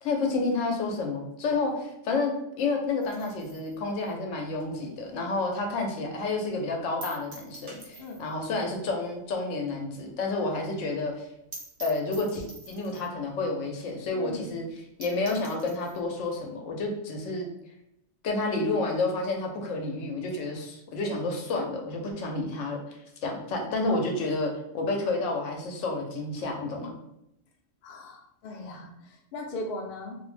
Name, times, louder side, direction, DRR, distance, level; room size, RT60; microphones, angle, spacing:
voice 1, 0.0-11.3 11.8-14.7 15.0-17.5 18.2-27.0, left 3 dB, 85° left, 2 dB, 0.9 m, -30 dB
sound 1, 3.0-5.7 6.0-6.1 6.4-6.5 7.0-8.4 8.7-8.8 9.1-9.2 9.6-9.7 9.9-10.0 10.3-10.4 10.7-10.8 11.2-11.3 11.5-13.2 13.9-14.0 14.3-14.4 14.7-14.8 15.0-16.0, right 2 dB, 50° right, 0.8 m, -46 dB
voice 2, 14.1-14.6 27.8-30.2, left 1 dB, 60° left, 0 dB, 0.6 m, -38 dB
2.5 x 2.0 x 3.1 m, 0.80 s
omnidirectional pair, 1.3 m